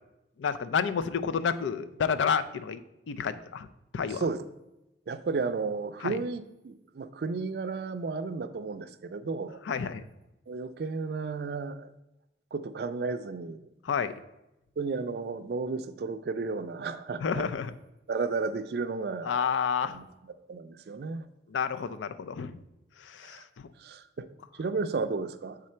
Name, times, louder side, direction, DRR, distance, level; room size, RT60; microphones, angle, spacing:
voice 1, 0.4-2.8 3.1-3.7 3.9-4.2 6.0-6.2 9.7-10.0 13.8-14.2 17.2-17.7 19.2-20.0 21.5-22.6 23.0-23.5, left 6 dB, 85° left, 12 dB, 0.4 m, -30 dB
voice 2, 4.1-4.4 5.1-9.6 10.5-11.9 12.5-13.7 14.8-17.4 18.1-19.5 19.8-20.0 20.5-21.2 23.2-23.4 23.8-24.3 24.6-25.6, right 4 dB, 55° right, 10 dB, 0.4 m, -33 dB
7.5 x 3.7 x 4.3 m, 0.93 s
head